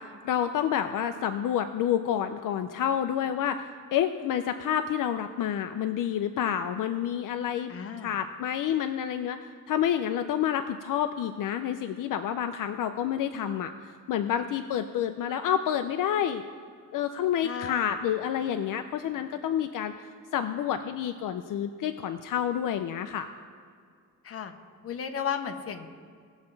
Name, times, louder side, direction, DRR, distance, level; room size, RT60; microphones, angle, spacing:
voice 1, 0.0-3.6 3.9-7.7 8.0-13.7 14.1-16.4 16.9-23.3, left 9 dB, 70° left, 8 dB, 0.5 m, -29 dB
voice 2, 7.7-8.1 17.4-17.9 24.2-24.5 24.8-25.9, left 7 dB, 45° left, 5 dB, 0.8 m, -34 dB
18.5 x 7.2 x 3.2 m, 2.2 s
wide cardioid pair, 165°, 33 cm